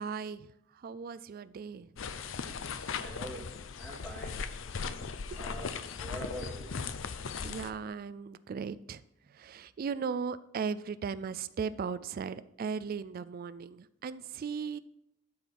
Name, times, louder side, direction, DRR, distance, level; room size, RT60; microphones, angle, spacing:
voice 1, 0.0-1.9 5.3-5.5 7.4-9.0 9.3-14.8, right 6 dB, 50° right, 15 dB, 0.3 m, -37 dB
sound 1, 2.0-7.7, left 5 dB, 70° left, 0.6 m, -38 dB
voice 2, 3.0-3.5 3.8-4.4 5.4-6.7, equal, 5° left, -2 dB, 2.3 m, -43 dB
12.0 x 4.6 x 5.3 m, 0.79 s
head